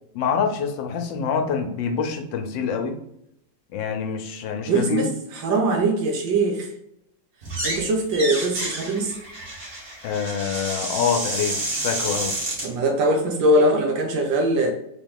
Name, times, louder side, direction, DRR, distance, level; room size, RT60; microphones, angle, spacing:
voice 1, 0.1-3.0 3.7-5.1 10.0-12.4, left 6 dB, 85° left, 5 dB, 1.4 m, -26 dB
voice 2, 4.7-5.1 5.4-6.7 7.6-9.2 12.6-14.7, right 1 dB, 85° right, 3 dB, 1.6 m, -21 dB
sound 1, 7.4-7.8 8.1-12.7, right 2 dB, 40° right, 1.5 m, -29 dB
4.1 x 3.0 x 3.8 m, 0.78 s
omnidirectional pair, 2.0 m